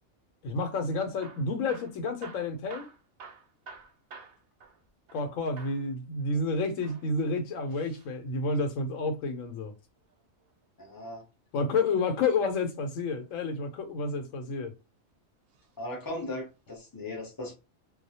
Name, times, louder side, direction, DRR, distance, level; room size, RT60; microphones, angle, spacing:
voice 1, 0.4-2.9 5.1-9.7 11.5-14.7, left 3 dB, 80° left, 1.0 m, -30 dB
Hammer / Drill, 1.1-5.3 5.6-5.9 6.7-8.1 9.9-11.1 12.8-13.3 14.0-14.8 15.5-15.7 16.0-16.1 16.8-16.9, right 4 dB, 60° right, 0.6 m, -51 dB
voice 2, 10.8-11.2 15.8-17.5, left 1 dB, 25° left, 0.4 m, -37 dB
2.3 x 2.0 x 2.7 m
omnidirectional pair, 1.4 m